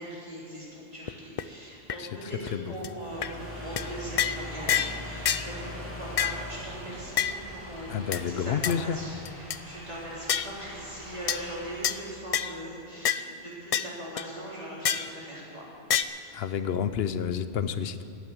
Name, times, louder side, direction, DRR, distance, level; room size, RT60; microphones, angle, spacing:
voice 1, 0.0-15.6, right 1 dB, 40° right, -6 dB, 4.0 m, -40 dB
sound 1, 1.1-1.2 1.4-1.5 1.9-2.0 2.5-2.6 2.8-2.9 3.2-3.3 3.8-3.9 4.2-4.4 4.7-5.0 5.2-5.5 6.2-6.4 7.2-7.4 8.1-8.2 8.6-8.7 9.2-9.6 10.3-10.5 11.3-11.4 11.8-12.0 12.3-12.5 13.0-13.2 13.7-13.9 14.2-14.3 14.8-15.1 15.9-16.0, left 8 dB, 55° left, 0.4 m, -27 dB
sound 2, 2.9-12.2, left 1 dB, 10° left, 3.1 m, -42 dB
voice 2, 7.9-9.0 16.3-18.0, left 7 dB, 75° left, 12 dB, 0.9 m, -29 dB
12.5 x 8.8 x 9.3 m, 2.9 s
omnidirectional pair, 1.1 m